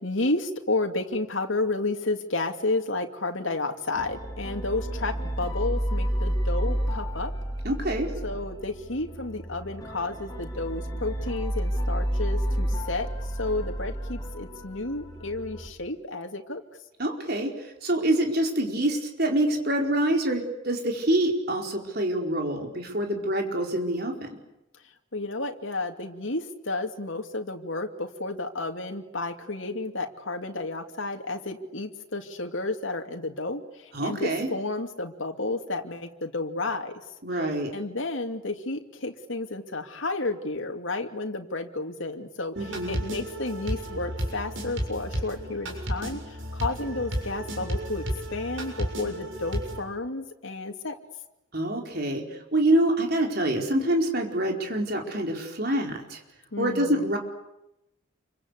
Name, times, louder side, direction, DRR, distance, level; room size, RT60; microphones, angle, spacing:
voice 1, 0.0-7.3 8.2-13.1 13.4-16.6 25.1-36.9 37.7-51.0 56.5-57.1, left 2 dB, 75° left, 4 dB, 2.6 m, -31 dB
sound 1, 4.0-15.7, equal, 20° left, 3.6 m, -30 dB
voice 2, 7.6-8.1 17.0-17.5 17.8-24.3 33.9-34.5 37.2-37.7 42.6-42.9 51.5-52.2 52.5-56.2 56.6-57.2, right 1 dB, 50° right, 2 dB, 4.7 m, -26 dB
sound 2, 42.6-49.8, equal, 75° right, 7.0 m, -33 dB
28.5 x 24.5 x 8.3 m, 0.89 s
head